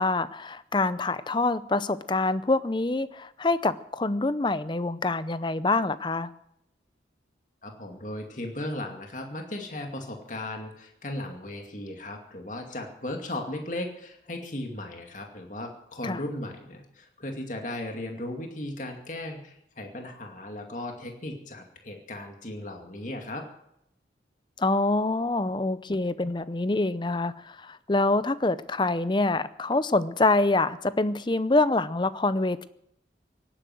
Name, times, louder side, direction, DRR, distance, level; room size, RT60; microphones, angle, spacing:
voice 1, 0.0-6.3 16.0-16.2 24.6-32.7, left 2 dB, 25° left, 15 dB, 0.6 m, -26 dB
voice 2, 7.6-23.5, left 1 dB, 45° left, 3 dB, 2.4 m, -36 dB
17.5 x 10.0 x 7.7 m, 0.77 s
head